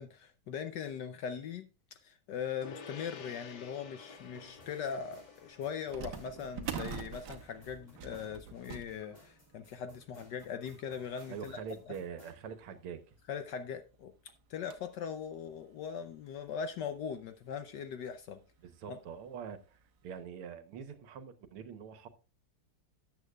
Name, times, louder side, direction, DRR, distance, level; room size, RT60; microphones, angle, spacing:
voice 1, 0.0-1.7 2.0-11.6 11.9-12.0 13.3-14.1 14.5-18.4 18.9-19.0, left 7 dB, 70° left, 1.1 m, -40 dB
Gong, 2.6-12.3, left 5 dB, 55° left, 1.7 m, -55 dB
sound 1, 4.0-12.3, left 2 dB, 20° left, 2.4 m, -60 dB
sound 2, 4.5-4.6 5.9-12.9 13.4-13.5 13.8-13.9 14.3-15.0 15.5-15.6 16.5-16.6 16.9-17.1 18.4-18.7 19.1-19.2 19.8-20.0, right 7 dB, 55° right, 1.4 m, -46 dB
voice 2, 11.3-13.2 18.6-22.1, right 7 dB, 80° right, 1.9 m, -44 dB
13.0 x 8.8 x 2.3 m
omnidirectional pair, 2.4 m